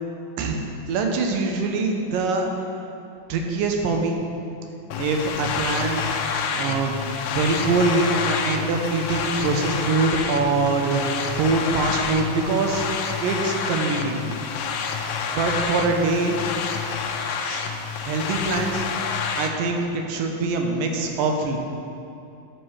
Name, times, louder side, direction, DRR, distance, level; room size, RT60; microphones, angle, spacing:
voice 1, 0.4-2.5 3.3-4.2 5.0-6.2 6.5-7.0 7.3-12.9 13.2-14.2 15.3-16.4 17.4-17.6 18.0-18.9 19.4-19.8 20.1-21.6, right 3 dB, 85° right, 2 dB, 2.5 m, -24 dB
sound 1, 4.9-19.5, left 6 dB, 80° left, 1.8 m, -28 dB
12.5 x 7.8 x 3.2 m, 2.6 s
omnidirectional pair, 3.8 m